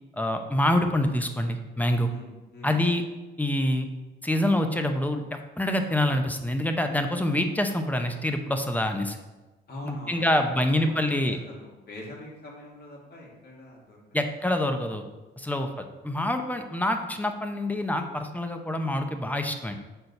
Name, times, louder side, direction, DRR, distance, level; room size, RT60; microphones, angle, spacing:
voice 1, 0.2-2.1 2.6-3.0 3.4-3.9 4.2-5.2 5.6-9.2 9.8-11.4 14.1-15.0 15.4-19.7, left 1 dB, 10° left, 6 dB, 0.8 m, -26 dB
voice 2, 2.1-2.8 9.7-14.0 15.4-15.6, left 1 dB, 55° left, -3 dB, 2.4 m, -43 dB
6.3 x 4.5 x 5.4 m, 1.1 s
cardioid pair, 90°, 20 cm